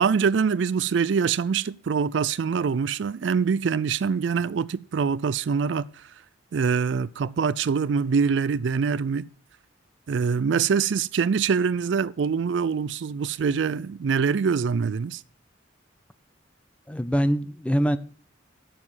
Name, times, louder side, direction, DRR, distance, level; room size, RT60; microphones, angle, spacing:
voice 1, 0.0-6.1 6.5-9.3 10.1-15.2, right 6 dB, 70° right, 0.4 m, -24 dB
voice 2, 16.9-18.0, equal, 5° left, 0.5 m, -23 dB
7.6 x 7.1 x 6.3 m
head